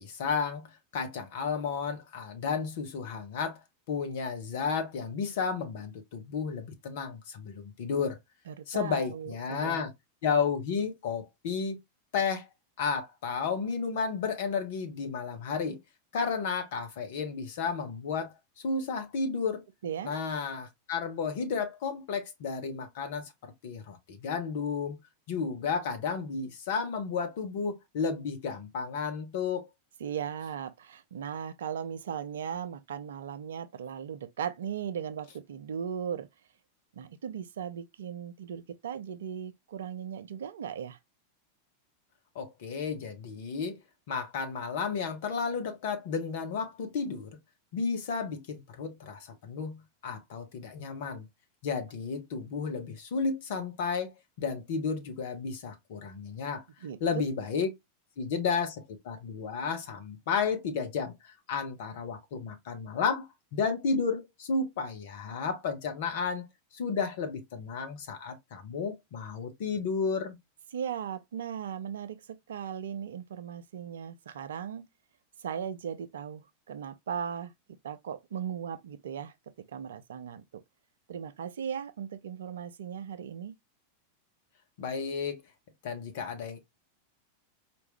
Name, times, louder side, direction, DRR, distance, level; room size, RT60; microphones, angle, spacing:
voice 1, 0.0-3.6 3.9-8.2 8.7-9.9 10.2-11.8 12.1-12.5 12.8-15.8 16.1-18.3 18.6-19.7 20.0-25.0 25.3-29.7 42.3-43.8 44.1-47.3 47.7-51.2 51.6-54.1 54.4-56.6 57.0-57.7 58.2-66.5 66.7-70.4 84.8-85.4 85.8-86.6, left 5 dB, 55° left, 1.1 m, -32 dB
voice 2, 8.5-9.9 19.8-20.2 30.0-36.3 37.0-41.0 56.8-57.0 70.7-74.8 75.4-77.5 77.8-79.3 79.7-80.6 81.1-83.5, right 8 dB, 60° right, 0.5 m, -37 dB
4.6 x 2.6 x 3.3 m
figure-of-eight pair, 90°, 0 cm